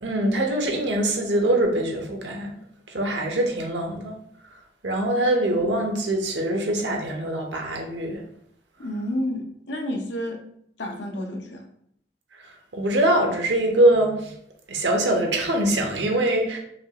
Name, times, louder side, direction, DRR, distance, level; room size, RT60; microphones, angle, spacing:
voice 1, 0.0-2.5 2.9-4.2 4.8-8.2 12.4-14.3 14.7-16.6, right 1 dB, 80° right, 1 dB, 0.9 m, -23 dB
voice 2, 8.8-10.4 10.8-11.6, left 1 dB, 80° left, 3 dB, 0.7 m, -30 dB
5.1 x 2.4 x 2.9 m, 0.70 s
head